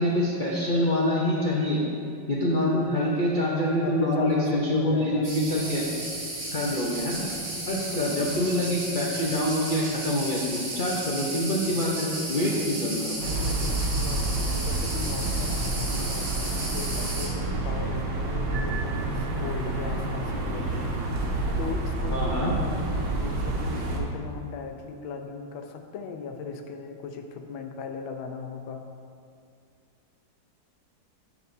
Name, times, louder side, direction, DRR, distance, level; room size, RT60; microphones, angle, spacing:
voice 1, 0.0-1.8 2.3-5.8 6.5-7.3 7.7-13.1 22.1-22.5, left 1 dB, 60° left, -5 dB, 0.5 m, -26 dB
voice 2, 3.8-5.3 7.9-8.1 12.4-12.8 13.0-20.9 21.2-28.8, left 5 dB, 90° left, 5 dB, 1.5 m, -37 dB
sound 1, 5.2-17.3, right 2 dB, 35° right, 1.5 m, -34 dB
sound 2, 13.2-24.0, right 2 dB, 75° right, 1.7 m, -29 dB
Piano, 18.5-19.8, right 5 dB, 50° right, 0.7 m, -40 dB
12.0 x 6.0 x 2.7 m, 2.4 s
omnidirectional pair, 2.1 m